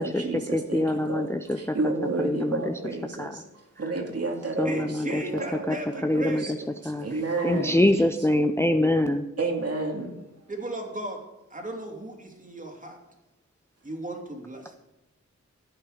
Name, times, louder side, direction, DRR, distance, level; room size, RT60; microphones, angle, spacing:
voice 1, 0.0-5.7 6.2-6.5 6.8-8.0 9.4-10.1, right 2 dB, 50° right, 2 dB, 2.3 m, -31 dB
voice 2, 0.5-1.6 2.2-2.7 3.2-3.3 4.6-5.2 5.7-5.8 6.0-6.6 6.8-7.1 7.4-9.3, left 1 dB, 10° left, 7 dB, 0.6 m, -24 dB
voice 3, 4.6-6.6 10.5-11.2 11.5-13.0 13.8-14.8, right 1 dB, 25° right, 2 dB, 2.7 m, -36 dB
14.0 x 8.7 x 5.0 m, 1.0 s
wide cardioid pair, 110°, 31 cm